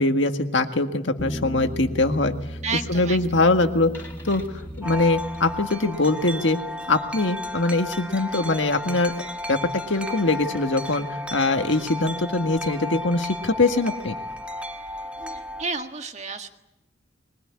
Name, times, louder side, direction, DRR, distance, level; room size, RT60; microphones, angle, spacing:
voice 1, 0.0-2.3 2.9-3.9 4.2-4.4 4.8-6.6 6.9-9.1 9.5-9.6 9.9-11.1 11.3-14.2, left 2 dB, 65° left, 6 dB, 1.9 m, -22 dB
sound 1, 1.2-6.1, equal, 10° left, 3.9 m, -36 dB
voice 2, 2.6-3.2 15.3-16.5, right 4 dB, 35° right, 6 dB, 1.7 m, -31 dB
Wind chime, 4.8-15.6, left 1 dB, 5° right, 1.4 m, -34 dB
23.0 x 21.0 x 9.8 m, 0.97 s
head